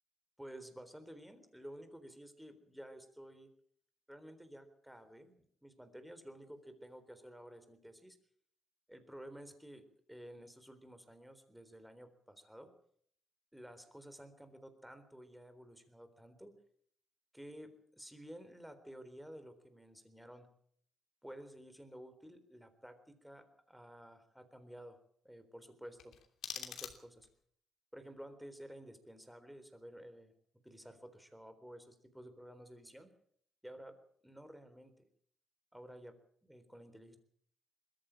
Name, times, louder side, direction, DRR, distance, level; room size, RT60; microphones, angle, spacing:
voice 1, 0.4-3.5 4.1-5.3 5.6-8.2 8.9-12.7 13.5-16.5 17.3-20.5 21.2-25.0 25.2-26.1 26.6-27.3 27.9-30.3 30.6-33.1 33.6-34.0 34.2-34.9 35.7-36.1 36.4-37.2, equal, 5° right, 9 dB, 3.9 m, -53 dB
sound 1, 25.9-27.4, left 9 dB, 75° left, 2.9 m, -46 dB
21.0 x 14.0 x 8.9 m, 0.63 s
cardioid pair, 90°, 0 cm